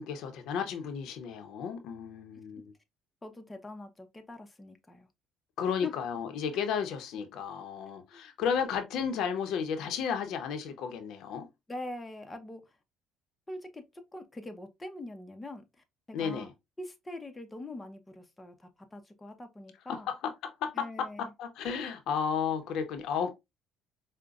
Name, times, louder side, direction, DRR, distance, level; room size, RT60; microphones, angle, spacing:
voice 1, 0.0-2.6 5.6-11.5 16.1-16.5 20.1-20.2 20.4-21.1 21.4-23.3, left 7 dB, 70° left, 0.8 m, -33 dB
voice 2, 3.2-5.1 5.8-5.9 8.1-8.3 11.7-12.8 13.5-13.8 14.1-15.6 16.1-16.5 16.8-20.1 20.7-21.3, left 2 dB, 15° left, 0.7 m, -43 dB
5.0 x 2.2 x 2.4 m
supercardioid pair, 90°, 0 cm